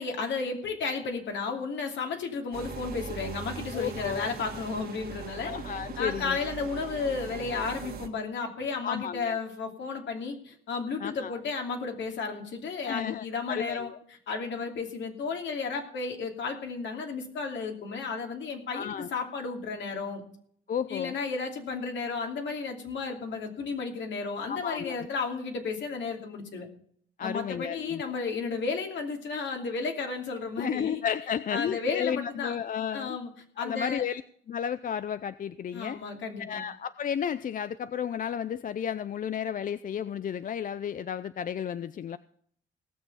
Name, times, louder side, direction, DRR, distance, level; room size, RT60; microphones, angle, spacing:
voice 1, 0.0-13.9 14.3-20.2 20.9-26.7 27.2-31.0 31.5-32.6 32.9-33.3 33.6-34.0 35.7-36.6, left 4 dB, 70° left, 3 dB, 2.8 m, -33 dB
sound 1, 2.5-8.1, right 6 dB, 50° right, 2.0 m, -40 dB
voice 2, 3.7-4.3 5.4-6.4 8.8-9.4 11.0-11.4 12.8-14.0 18.7-19.1 20.7-21.2 24.5-25.0 27.2-28.1 30.6-33.2 33.6-34.2 34.5-36.0 36.4-42.2, left 8 dB, 45° left, 15 dB, 0.5 m, -33 dB
17.5 x 6.9 x 5.6 m, 0.62 s
cardioid pair, 90°, 20 cm